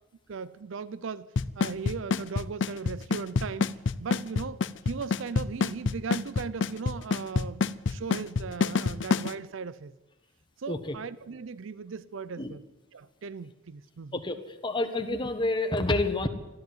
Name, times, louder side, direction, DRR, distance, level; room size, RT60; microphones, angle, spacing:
voice 1, 0.3-1.3 1.5-3.7 4.0-9.9 10.6-12.6 12.9-14.2, right 5 dB, 65° right, 0.5 m, -38 dB
Drum kit / Snare drum / Bass drum, 1.4-9.3, left 5 dB, 60° left, 0.5 m, -26 dB
voice 2, 14.6-16.3, left 2 dB, 20° left, 1.3 m, -28 dB
13.0 x 13.0 x 7.9 m
head